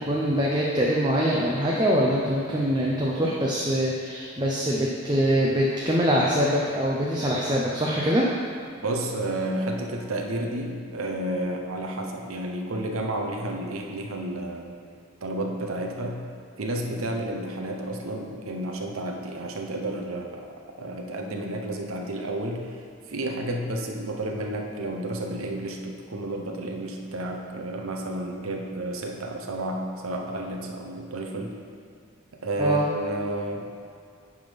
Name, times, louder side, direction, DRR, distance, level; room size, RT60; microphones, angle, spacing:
voice 1, 0.1-8.2 32.6-32.9, equal, 20° right, -4 dB, 0.6 m, -23 dB
voice 2, 8.8-14.8 15.2-16.3 16.6-20.5 20.8-22.8 23.1-31.6 32.3-33.7, right 1 dB, 90° right, 2 dB, 0.7 m, -31 dB
9.5 x 3.6 x 5.1 m, 2.3 s
head